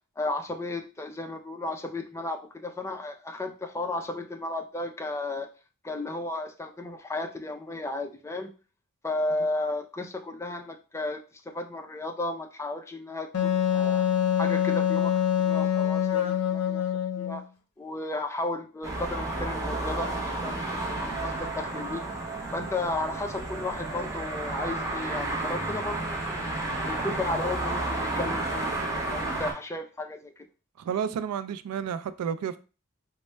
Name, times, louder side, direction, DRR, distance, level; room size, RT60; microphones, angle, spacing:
voice 1, 0.2-5.5 5.8-8.5 9.0-14.1 14.4-15.2 15.5-16.8 17.2-17.4 17.8-22.0 22.5-26.5 26.8-30.5, left 2 dB, 10° left, 0.3 m, -34 dB
Wind instrument woodwind instrument, 13.3-17.4, left 9 dB, 80° left, 0.6 m, -25 dB
sound 1, 18.8-29.5, right 2 dB, 15° right, 0.8 m, -31 dB
voice 2, 30.8-32.6, right 7 dB, 85° right, 0.3 m, -31 dB
4.1 x 2.1 x 3.2 m
head